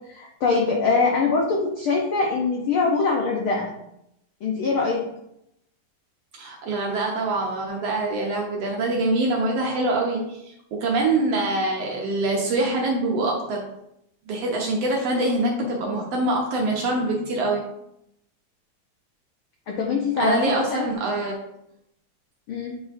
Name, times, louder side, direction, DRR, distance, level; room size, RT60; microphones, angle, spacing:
voice 1, 0.1-3.7 4.4-5.0 19.7-20.9 22.5-22.8, left 4 dB, 80° left, -1 dB, 1.2 m, -23 dB
voice 2, 6.3-13.7 14.3-17.6 20.2-21.4, right 2 dB, 65° right, -1 dB, 1.7 m, -24 dB
9.0 x 4.9 x 2.6 m, 0.79 s
omnidirectional pair, 3.6 m